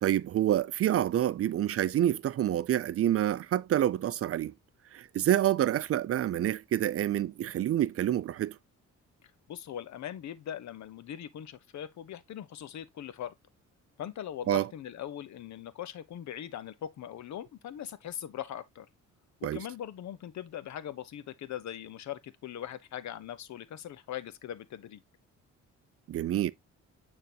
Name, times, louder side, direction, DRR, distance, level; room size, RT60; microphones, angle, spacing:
voice 1, 0.0-4.5 4.9-8.6 14.5-14.7 19.4-19.6 26.1-26.5, right 12 dB, 50° right, 0.5 m, -27 dB
voice 2, 9.2-13.3 14.0-18.9 19.4-25.0, left 10 dB, 65° left, 1.0 m, -41 dB
9.2 x 4.0 x 2.9 m
cardioid pair, 90°, 30 cm